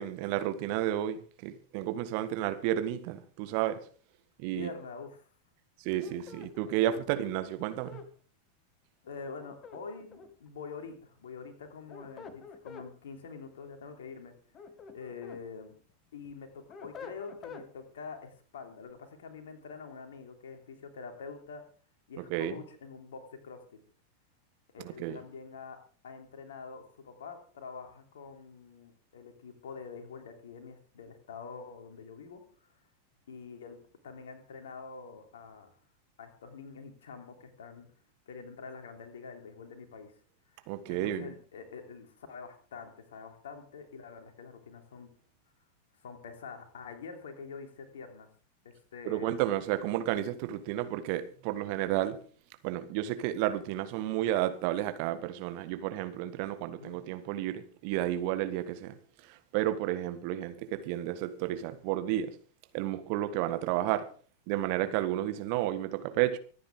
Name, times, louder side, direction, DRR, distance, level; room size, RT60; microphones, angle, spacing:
voice 1, 0.0-3.8 4.4-4.7 5.8-8.0 22.2-22.5 25.0-25.2 40.7-41.3 49.0-52.2 52.6-59.0 59.5-62.3 62.7-64.1 64.5-66.4, right 13 dB, 45° right, 1.5 m, -31 dB
voice 2, 4.5-5.2 9.0-14.3 14.9-15.7 16.1-21.6 22.1-23.8 24.7-25.8 26.0-32.4 33.3-33.8 34.0-35.7 36.2-37.9 38.3-40.1 40.6-45.1 46.0-48.3 48.6-49.3 56.7-57.0, left 5 dB, 60° left, 3.2 m, -46 dB
sound 1, 6.0-8.1 9.4-10.5 11.7-12.9 14.3-15.4 15.9-17.7, left 5 dB, 25° left, 1.9 m, -48 dB
25.0 x 9.6 x 3.7 m
figure-of-eight pair, 90°, 0 cm